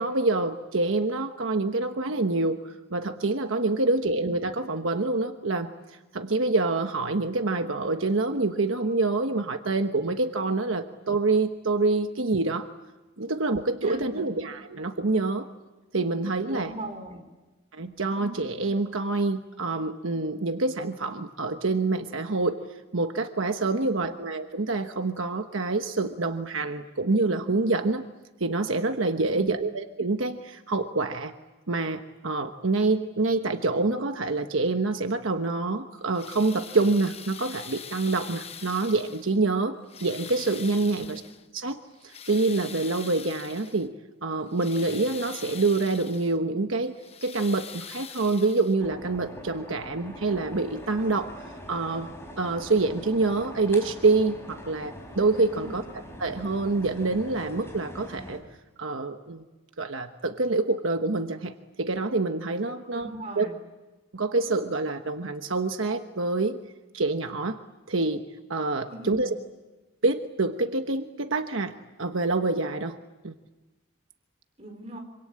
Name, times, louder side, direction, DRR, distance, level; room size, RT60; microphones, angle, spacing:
voice 1, 0.0-12.7 13.2-15.5 15.9-16.7 17.7-22.6 22.9-28.0 28.4-31.3 31.7-41.2 41.5-43.9 44.2-46.9 47.2-51.4 51.7-55.8 56.2-58.4 58.8-59.4 59.8-63.1 63.4-63.5 64.1-66.6 66.9-67.6 67.9-69.4 70.0-73.0 73.2-73.3, right 3 dB, 75° right, 6 dB, 1.2 m, -26 dB
voice 2, 3.8-4.1 13.8-14.4 16.5-17.2 24.0-24.1 29.2-29.5 40.9-41.1 55.5-55.7 62.9-63.6 68.9-69.3 74.6-75.0, right 1 dB, 30° right, 3 dB, 5.0 m, -40 dB
sound 1, 36.0-39.4 39.8-41.5 41.9-43.9 44.3-46.4 46.9-49.0 50.1-50.2 50.8-50.9, left 7 dB, 30° left, 0.9 m, -43 dB
sound 2, 48.8-58.4, equal, 10° left, 5.4 m, -43 dB
26.5 x 25.5 x 8.7 m, 1.2 s
head